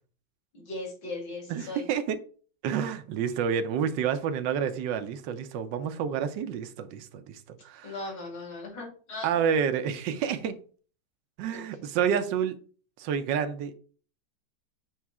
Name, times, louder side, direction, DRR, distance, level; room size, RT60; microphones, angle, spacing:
voice 1, 0.5-1.8 7.8-9.3 11.5-11.6, left 2 dB, 60° left, 3.1 m, -38 dB
voice 2, 1.5-2.2 2.6-7.9 9.2-10.6 11.4-12.5 13.0-13.8, right 7 dB, 70° right, 1.3 m, -29 dB
7.2 x 3.2 x 4.8 m
omnidirectional pair, 2.2 m